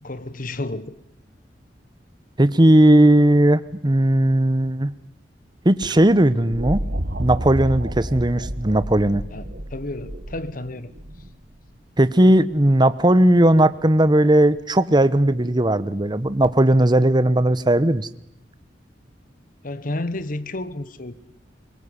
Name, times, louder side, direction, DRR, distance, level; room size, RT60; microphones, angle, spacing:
voice 1, 0.0-0.9 9.3-9.4 9.7-10.9 19.6-21.1, left 2 dB, 50° left, 15 dB, 1.3 m, -31 dB
voice 2, 2.4-4.9 5.6-6.8 7.2-9.2 12.0-18.1, right 1 dB, 25° right, 15 dB, 1.1 m, -17 dB
sound 1, 5.8-11.7 13.4-13.9 16.4-16.5, right 1 dB, 60° right, 1.7 m, -31 dB
24.5 x 21.5 x 9.9 m, 0.72 s
head